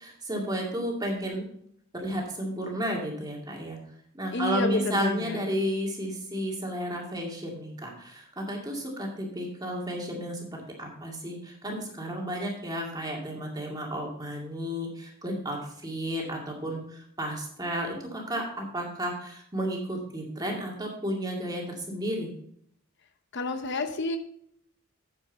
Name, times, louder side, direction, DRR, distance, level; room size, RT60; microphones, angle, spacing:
voice 1, 0.0-1.5 1.9-3.8 4.1-22.3, equal, 20° right, -1 dB, 2.2 m, -32 dB
voice 2, 4.3-5.4 23.3-24.2, left 2 dB, 55° left, 8 dB, 0.7 m, -29 dB
9.0 x 8.3 x 4.0 m, 0.68 s
head